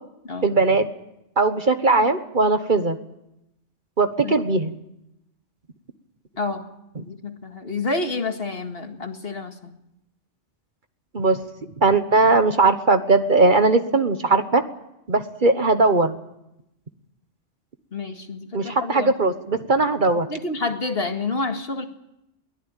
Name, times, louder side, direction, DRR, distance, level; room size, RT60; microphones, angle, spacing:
voice 1, 0.4-0.9 1.4-3.0 4.0-4.7 11.1-11.4 11.8-14.6 15.1-16.1 18.5-20.3, right 3 dB, 45° right, 9 dB, 1.3 m, -19 dB
voice 2, 6.4-6.7 7.0-9.7 17.9-19.1 20.3-21.8, left 3 dB, 55° left, 5 dB, 2.1 m, -29 dB
22.5 x 18.0 x 9.0 m, 0.85 s
omnidirectional pair, 1.2 m